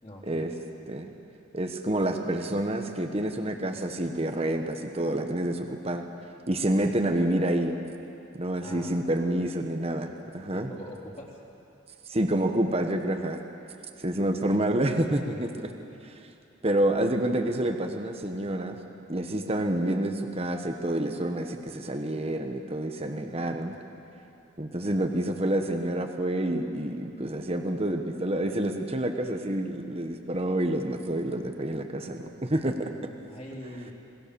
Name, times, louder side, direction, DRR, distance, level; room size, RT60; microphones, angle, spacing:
voice 1, 0.0-0.5 8.6-9.1 10.5-11.4 33.3-33.9, left 1 dB, 30° left, -3 dB, 3.7 m, -43 dB
voice 2, 1.5-6.0 6.5-7.7 8.4-10.7 12.1-13.4 14.0-15.7 16.0-16.2 16.6-18.8 19.1-23.7 24.6-32.9, right 1 dB, 30° right, 4 dB, 1.2 m, -28 dB
27.0 x 20.0 x 7.0 m, 2.7 s
head